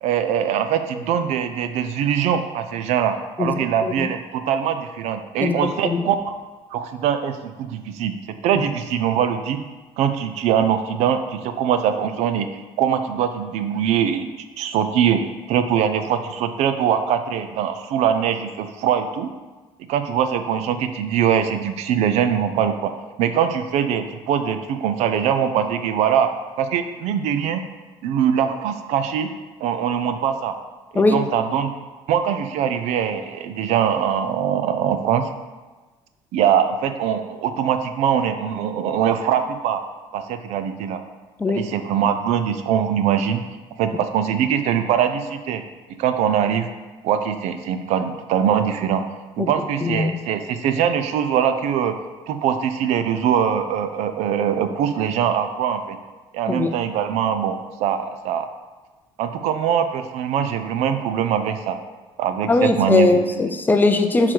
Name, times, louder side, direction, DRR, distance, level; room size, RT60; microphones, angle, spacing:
voice 1, 0.0-6.2 6.7-8.1 8.4-9.6 10.0-14.3 14.6-15.2 15.5-19.3 19.9-27.6 28.0-29.3 29.6-30.6 30.9-31.7 32.1-35.3 36.3-39.8 40.1-41.0 41.4-43.4 43.8-45.6 46.0-46.7 47.0-49.0 49.4-51.9 52.3-56.0 56.3-58.5 59.2-61.8 62.2-63.1, right 8 dB, 75° right, 9 dB, 0.5 m, -22 dB
voice 2, 3.4-4.1 5.4-6.0 31.0-31.2 41.4-41.7 49.4-49.5 49.8-50.1 56.5-56.7 62.5-64.3, left 3 dB, 15° left, 7 dB, 0.5 m, -20 dB
6.2 x 3.9 x 4.6 m, 1.2 s
cardioid pair, 115°, 11 cm